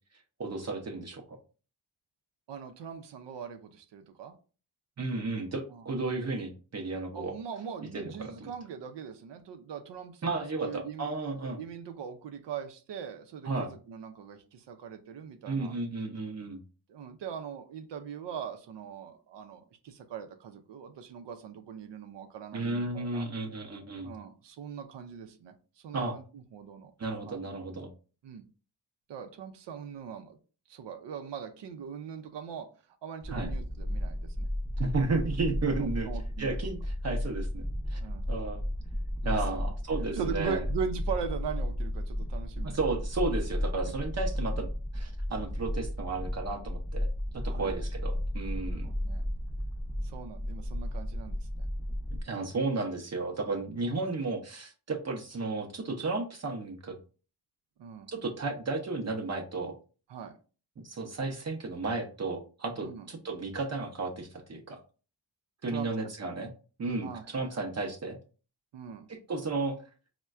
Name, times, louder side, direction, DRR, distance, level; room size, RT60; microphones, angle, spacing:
voice 1, 0.4-1.4 5.0-7.3 7.9-8.5 10.2-11.6 13.4-13.7 15.5-16.6 22.5-24.1 25.9-26.2 27.0-27.9 33.3-33.5 34.8-36.1 36.4-38.0 38.3-38.6 39.2-40.6 42.6-44.7 44.9-48.9 52.2-57.0 58.1-59.7 60.8-64.8 65.6-66.5 66.8-68.2 69.1-69.8, right 3 dB, 40° right, 3 dB, 0.6 m, -33 dB
voice 2, 2.5-4.3 5.1-5.2 5.7-5.8 7.1-11.1 11.6-15.7 16.9-23.3 24.0-26.2 26.5-26.9 27.2-27.4 28.2-28.4 29.1-30.4 30.7-32.7 33.0-34.5 35.8-36.6 38.0-38.3 39.2-39.6 40.1-42.8 47.5-47.8 48.8-49.2 50.0-51.4 52.3-52.5 57.8-58.1 60.1-60.3 62.8-63.1 65.7-66.1 67.0-67.7 68.7-69.1, right 7 dB, 85° right, 6 dB, 0.5 m, -41 dB
sound 1, 33.2-52.2, left 1 dB, 10° left, 0.5 m, -33 dB
4.2 x 2.1 x 2.3 m, 0.36 s
wide cardioid pair, 100°, 42 cm